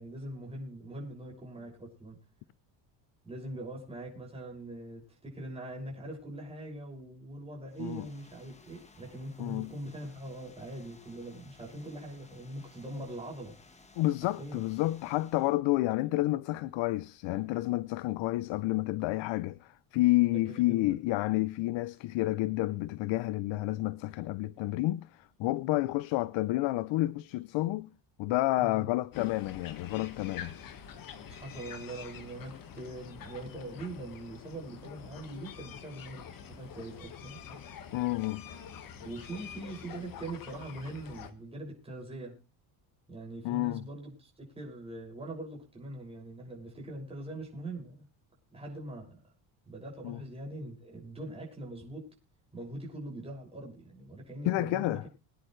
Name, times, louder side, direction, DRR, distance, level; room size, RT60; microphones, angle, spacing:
voice 1, 0.0-2.2 3.2-13.6 14.4-14.6 17.3-17.4 20.3-21.0 28.6-28.9 31.3-37.6 39.0-42.4 43.1-48.1 48.5-49.2 49.7-52.1 52.5-55.0, right 1 dB, 10° right, 6.1 m, -42 dB
sound 1, 7.7-15.6, left 3 dB, 15° left, 1.4 m, -58 dB
voice 2, 9.4-9.7 14.0-27.9 28.2-30.6 37.9-38.4 43.4-43.8 50.0-50.2 54.4-55.0, left 18 dB, 70° left, 0.7 m, -30 dB
sound 2, 29.1-41.3, left 8 dB, 45° left, 1.7 m, -46 dB
23.5 x 10.0 x 3.2 m
cardioid pair, 155°, 47 cm